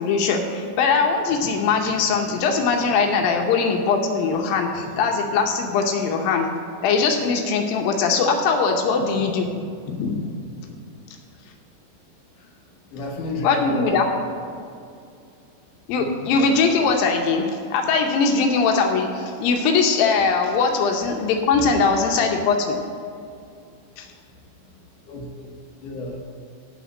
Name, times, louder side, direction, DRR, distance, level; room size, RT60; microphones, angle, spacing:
voice 1, 0.0-6.5 6.8-9.5 9.9-10.3 13.4-14.0 15.9-22.8 24.0-24.1, left 5 dB, 85° left, 2 dB, 2.6 m, -21 dB
voice 2, 12.9-14.0 21.5-21.7 25.1-25.5 25.8-26.2, left 2 dB, 70° left, 0 dB, 2.5 m, -32 dB
12.5 x 4.4 x 8.3 m, 2.5 s
omnidirectional pair, 4.0 m